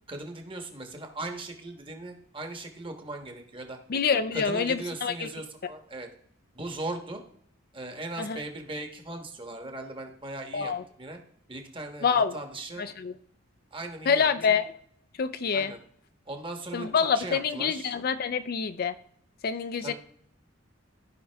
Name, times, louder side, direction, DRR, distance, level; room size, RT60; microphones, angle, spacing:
voice 1, 0.1-3.8 4.3-6.1 6.5-7.2 7.7-11.2 11.5-12.8 13.7-14.6 15.5-15.8 16.3-16.9 17.1-18.0 19.8-19.9, right 2 dB, 25° right, 4 dB, 1.2 m, -38 dB
voice 2, 3.9-5.3 8.2-8.4 10.5-10.8 12.0-12.3 12.8-13.1 14.1-14.7 15.2-15.7 16.7-19.0 19.4-19.9, left 6 dB, 45° left, 11 dB, 0.4 m, -26 dB
15.0 x 5.4 x 3.4 m, 0.65 s
head